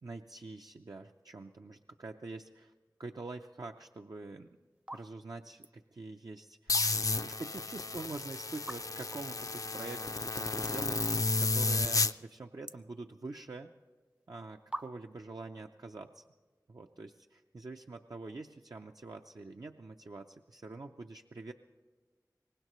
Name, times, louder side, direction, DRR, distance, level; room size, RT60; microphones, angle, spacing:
voice 1, 0.0-2.7 3.0-4.6 4.9-6.9 7.2-13.7 14.3-16.2 16.7-21.5, right 3 dB, 65° right, 3 dB, 0.5 m, -45 dB
sound 1, 4.2-4.3 4.8-5.1 5.4-5.8 6.5-7.2 7.6-7.7 8.6-9.1 9.7-9.8 10.0-10.1 10.6-11.0 11.3-11.8 12.1-13.5 14.2-14.3 14.7-15.3, right 1 dB, 15° right, 0.5 m, -44 dB
sound 2, 6.7-12.1, left 3 dB, 55° left, 0.4 m, -32 dB
23.5 x 19.0 x 3.1 m, 1.4 s
wide cardioid pair, 45°, 7 cm